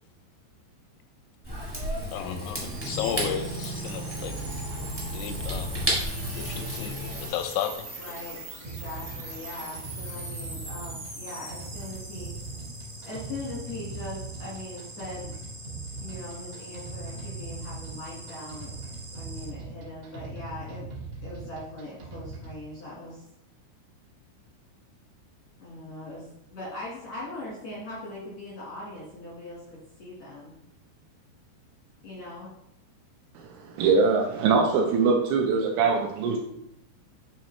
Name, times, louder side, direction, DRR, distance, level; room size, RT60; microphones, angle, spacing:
Rain / Fire, 1.4-7.3, equal, 10° right, 0.6 m, -32 dB
voice 1, 2.1-4.4 5.0-5.8 6.3-6.9 7.3-7.9, left 9 dB, 90° left, 7 dB, 3.3 m, -33 dB
sound 1, 2.3-19.5, right 2 dB, 35° right, 1.1 m, -42 dB
voice 2, 8.0-12.3 13.1-15.3 16.0-18.8 19.1-20.9 21.2-23.2 25.6-26.2 26.5-30.5 32.0-32.5, left 2 dB, 70° left, -6 dB, 1.6 m, -40 dB
sound 2, 8.6-22.6, right 3 dB, 65° right, 2.9 m, -40 dB
voice 3, 33.4-36.4, right 4 dB, 80° right, 1 dB, 2.9 m, -23 dB
9.1 x 4.3 x 3.2 m, 0.78 s
omnidirectional pair, 5.7 m